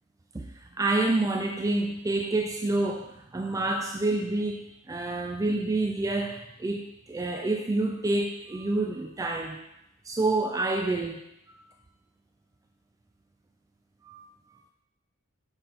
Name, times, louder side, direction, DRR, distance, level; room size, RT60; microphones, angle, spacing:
voice 1, 0.3-9.6 10.0-11.2 11.5-11.7 14.0-14.2, right 2 dB, 15° right, 2 dB, 0.3 m, -28 dB
6.7 x 4.0 x 4.2 m, 0.86 s
head